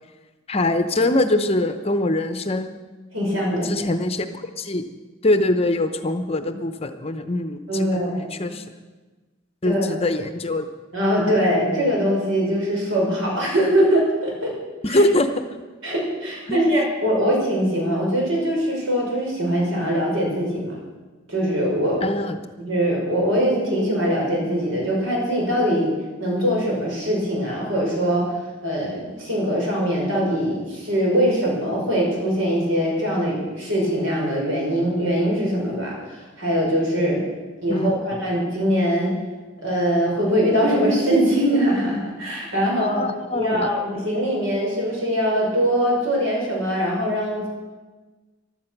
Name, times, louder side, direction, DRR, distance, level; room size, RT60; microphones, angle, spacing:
voice 1, 0.5-2.8 3.6-4.3 4.6-4.8 5.2-8.6 9.6-10.7 14.8-15.4 16.5-16.6 22.0-22.4 37.7-38.2 42.8-43.7, left 1 dB, 30° left, 9 dB, 0.8 m, -23 dB
voice 2, 3.1-3.7 7.7-8.5 9.6-9.8 10.9-14.5 14.9-15.0 15.8-20.7 21.3-22.2 22.6-25.9 26.2-28.3 28.6-37.2 37.6-39.1 39.6-43.0 43.3-47.5, equal, 70° right, -2 dB, 5.8 m, -22 dB
16.0 x 12.0 x 6.0 m, 1.3 s
head